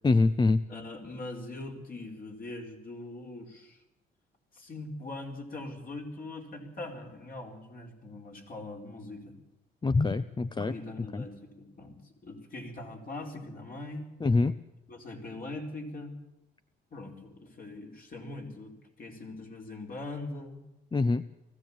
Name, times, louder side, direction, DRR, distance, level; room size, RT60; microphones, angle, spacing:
voice 1, 0.0-0.6 9.8-10.7 11.1-11.2 14.2-14.5 20.9-21.2, left 3 dB, 20° left, 13 dB, 0.6 m, -24 dB
voice 2, 0.7-3.8 4.5-9.4 10.7-14.1 14.9-16.1 16.9-20.6, left 2 dB, 45° left, 0 dB, 4.5 m, -42 dB
20.0 x 15.0 x 8.7 m, 0.96 s
cardioid pair, 90°, 20 cm